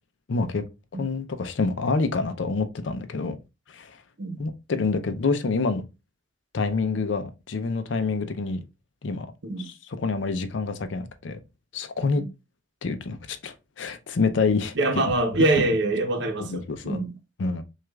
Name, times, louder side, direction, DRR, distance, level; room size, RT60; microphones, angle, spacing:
voice 1, 0.3-0.6 1.0-3.4 3.7-4.0 4.4-5.8 6.5-8.6 9.0-9.3 10.0-11.4 11.7-12.2 12.8-14.7 16.4-17.0 17.4-17.6, left 4 dB, 70° left, 0.5 m, -27 dB
voice 2, 14.7-17.1, right 2 dB, 65° right, 0.7 m, -24 dB
6.0 x 2.4 x 2.3 m
head